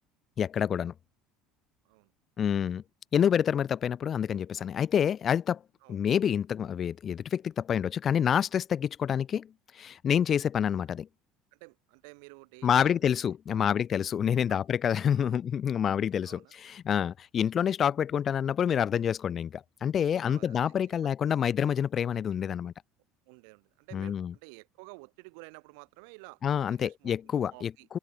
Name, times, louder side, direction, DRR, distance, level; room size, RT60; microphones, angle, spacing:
voice 1, 0.4-0.9 2.4-2.8 3.1-5.6 5.9-11.1 12.6-22.7 23.9-24.3 26.4-28.0, left 8 dB, 40° left, 0.9 m, -27 dB
voice 2, 11.5-13.8 14.5-14.6 15.2-15.4 16.2-16.5 20.2-21.1 23.2-26.4 26.7-28.0, right 35 dB, 65° right, 4.6 m, -52 dB
hypercardioid pair, 65°, 0 cm